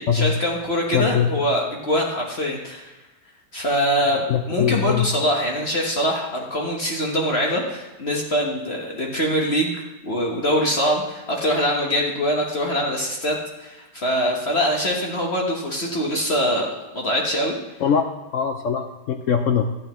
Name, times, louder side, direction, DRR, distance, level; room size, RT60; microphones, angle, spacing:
voice 1, 0.0-2.9 3.5-17.6, equal, 40° left, -1 dB, 1.2 m, -23 dB
voice 2, 0.9-1.4 4.3-5.1 17.8-18.1 18.3-19.6, left 7 dB, 75° left, 6 dB, 0.7 m, -21 dB
11.5 x 9.0 x 3.0 m, 1.1 s
omnidirectional pair, 1.9 m